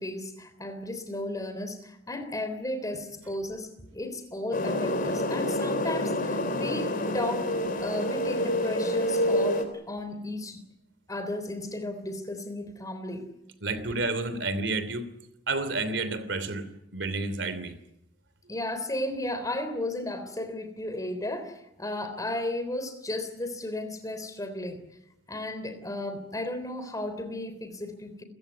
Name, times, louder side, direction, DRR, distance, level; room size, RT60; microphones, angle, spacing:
voice 1, 0.0-7.5 7.8-10.6 11.1-13.3 18.5-24.8 25.3-28.2, left 1 dB, 20° left, 10 dB, 3.6 m, -34 dB
sound 1, 4.5-9.6, left 1 dB, 50° left, 3.6 m, -28 dB
voice 2, 13.6-15.1 15.5-16.7 16.9-17.8, right 3 dB, 80° right, 13 dB, 3.0 m, -30 dB
29.0 x 16.0 x 9.5 m, 0.84 s
head